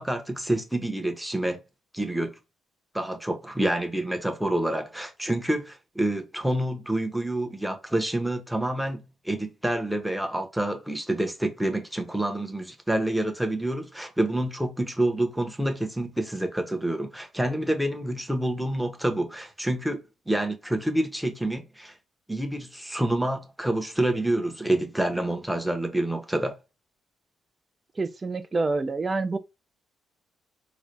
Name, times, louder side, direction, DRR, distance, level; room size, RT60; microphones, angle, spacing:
voice 1, 0.0-1.6 1.9-2.4 2.9-21.9 22.3-26.5, right 1 dB, 5° right, 0.8 m, -28 dB
voice 2, 28.0-29.4, right 3 dB, 25° right, 0.4 m, -27 dB
3.8 x 2.2 x 3.2 m
cardioid pair, 90°, 0 cm